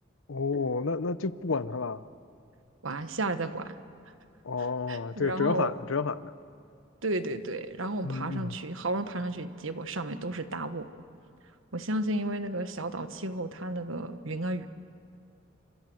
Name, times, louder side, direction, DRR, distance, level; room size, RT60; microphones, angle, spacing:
voice 1, 0.3-2.0 4.4-6.3 8.0-8.6, left 4 dB, 85° left, 15 dB, 0.8 m, -30 dB
voice 2, 2.8-3.8 4.9-5.7 7.0-10.9 11.7-14.7, right 2 dB, 85° right, 10 dB, 1.4 m, -33 dB
28.0 x 26.0 x 7.9 m, 2.5 s
head